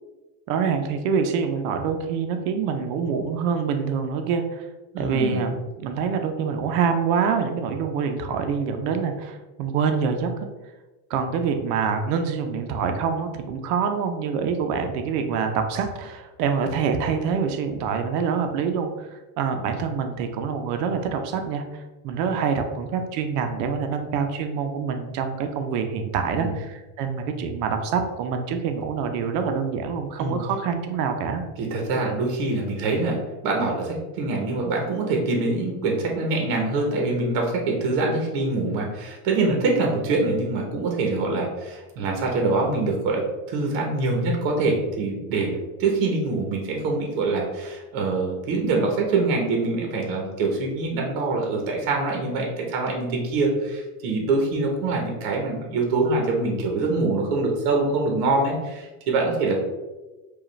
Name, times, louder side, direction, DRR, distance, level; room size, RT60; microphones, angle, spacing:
voice 1, 0.5-4.7 5.0-10.3 11.1-31.4, right 6 dB, 80° right, 6 dB, 0.7 m, -26 dB
voice 2, 4.9-5.4 26.3-26.5 30.2-30.4 31.6-43.2 43.5-59.6, right 3 dB, 65° right, 1 dB, 1.1 m, -24 dB
4.8 x 2.5 x 3.1 m, 1.1 s
cardioid pair, 150°, 47 cm